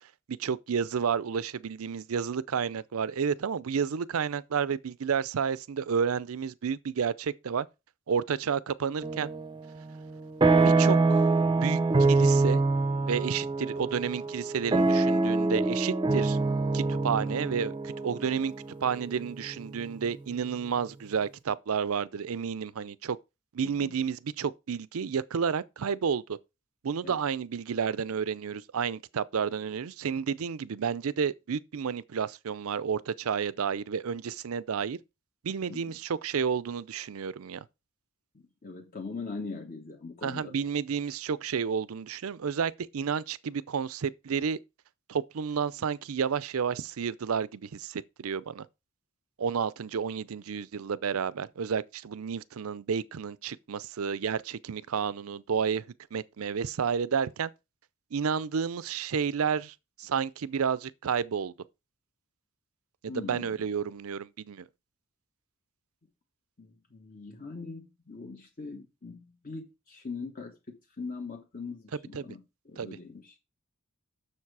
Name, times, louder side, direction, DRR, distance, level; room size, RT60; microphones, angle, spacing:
voice 1, 0.3-7.7 8.1-9.3 10.6-12.6 13.1-16.4 16.7-18.5 18.8-23.2 23.5-26.4 26.8-35.0 35.4-37.6 40.2-44.6 45.1-48.7 49.4-55.8 56.1-57.5 58.1-61.5 63.0-64.7 72.1-72.3 72.8-73.0, right 6 dB, 70° right, 0.5 m, -31 dB
sound 1, 9.0-9.6 9.9-20.0, right 3 dB, 20° right, 0.6 m, -25 dB
voice 2, 23.6-23.9 27.0-27.2 35.7-36.0 38.6-40.5 63.1-63.5 66.6-73.4, left 4 dB, 40° left, 1.3 m, -41 dB
7.3 x 6.6 x 4.7 m
head